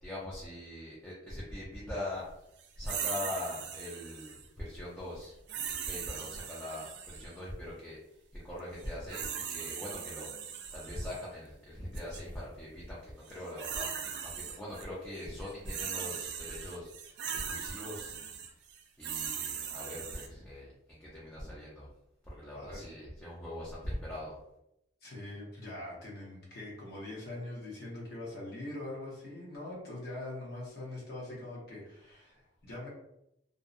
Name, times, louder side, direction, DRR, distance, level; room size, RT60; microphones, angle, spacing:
voice 1, 0.0-2.2 2.8-5.4 5.6-10.3 10.7-13.9 14.2-18.1 19.0-21.9 22.2-24.4, left 1 dB, 10° left, -8 dB, 0.5 m, -42 dB
sound 1, 2.8-4.5 5.5-7.3 8.8-11.2 11.9-12.2 13.3-14.8 15.1-20.3, right 8 dB, 65° right, 0.3 m, -39 dB
voice 2, 22.5-22.8 25.0-32.9, left 1 dB, 60° left, -6 dB, 0.8 m, -43 dB
2.6 x 2.0 x 2.5 m, 0.82 s
head